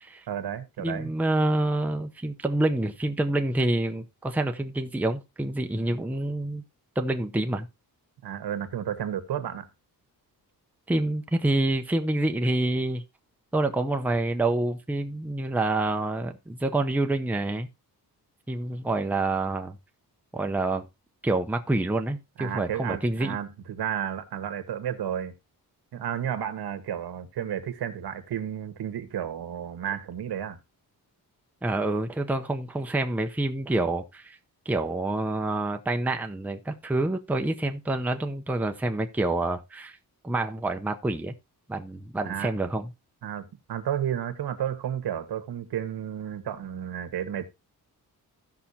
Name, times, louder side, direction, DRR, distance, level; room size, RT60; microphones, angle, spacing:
voice 1, 0.3-1.1 8.2-9.7 22.4-25.3 25.9-30.6 42.2-42.5 43.2-47.4, right 9 dB, 80° right, 1.4 m, -32 dB
voice 2, 0.8-6.6 7.0-7.7 10.9-13.0 13.5-17.7 18.5-19.8 20.3-20.8 21.2-23.4 31.6-34.4 34.7-40.0 40.2-41.3 41.7-42.9, right 2 dB, 5° right, 0.6 m, -27 dB
16.0 x 5.8 x 2.8 m
wide cardioid pair, 155°, 38 cm